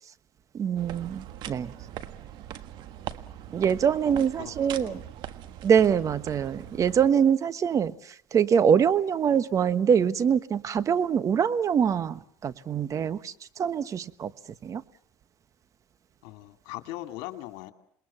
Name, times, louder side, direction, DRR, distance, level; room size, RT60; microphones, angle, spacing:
voice 1, 0.5-1.7 3.5-5.0 5.6-14.3 14.6-14.8, right 7 dB, 40° right, 13 dB, 1.3 m, -24 dB
sound 1, 0.8-7.1, right 11 dB, 60° right, 1.5 m, -41 dB
voice 2, 4.0-5.0 16.2-17.7, left 16 dB, 70° left, 7 dB, 2.5 m, -40 dB
28.0 x 21.0 x 7.2 m, 0.65 s
supercardioid pair, 95°, 9 cm